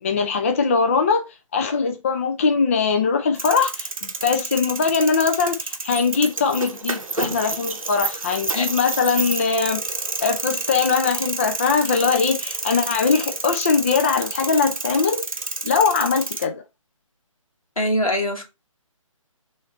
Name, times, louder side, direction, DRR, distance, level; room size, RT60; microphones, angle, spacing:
voice 1, 0.0-1.2 1.5-9.8 10.2-15.2 15.6-16.6, left 5 dB, 25° left, 0.4 m, -21 dB
sound 1, 3.3-16.4, right 3 dB, 75° right, 0.8 m, -29 dB
voice 2, 17.8-18.4, equal, 85° left, 1.5 m, -23 dB
3.7 x 3.2 x 3.9 m
figure-of-eight pair, 145°, 18 cm